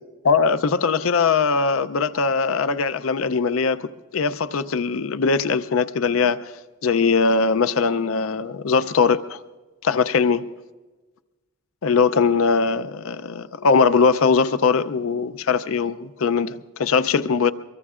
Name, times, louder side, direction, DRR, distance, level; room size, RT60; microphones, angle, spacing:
voice 1, 0.2-3.8 4.1-6.4 6.8-9.4 9.8-10.4 11.8-17.5, left 5 dB, 85° left, 0.5 m, -20 dB
24.0 x 23.0 x 2.5 m
head